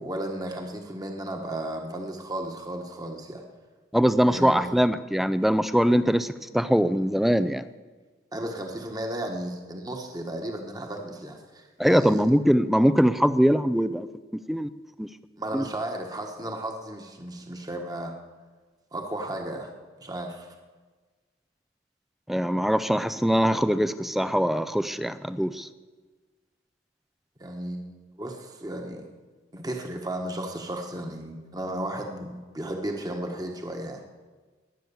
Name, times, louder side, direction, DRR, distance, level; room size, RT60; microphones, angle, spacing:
voice 1, 0.0-3.4 4.3-4.8 8.3-12.3 15.4-18.1 18.9-19.7 20.0-20.5 27.4-29.1 29.5-34.0, right 1 dB, 20° right, 2 dB, 1.4 m, -34 dB
voice 2, 3.9-7.6 11.8-14.1 14.3-14.7 15.0-15.1 15.5-15.6 22.3-25.7, equal, ahead, 13 dB, 0.4 m, -22 dB
21.0 x 9.3 x 7.0 m, 1.4 s
head